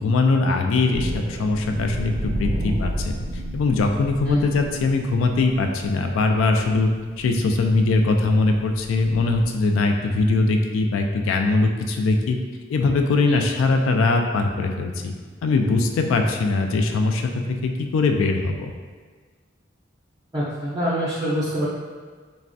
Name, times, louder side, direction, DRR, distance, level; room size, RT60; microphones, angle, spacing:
voice 1, 0.0-3.1 3.5-6.9 7.2-12.4 12.7-15.1 15.4-18.7, left 3 dB, 90° left, 4 dB, 0.3 m, -21 dB
sound 1, 0.9-9.5, right 1 dB, 90° right, 0.4 m, -32 dB
voice 2, 20.3-21.7, equal, 20° right, -10 dB, 0.4 m, -24 dB
3.3 x 2.1 x 2.5 m, 1.5 s
head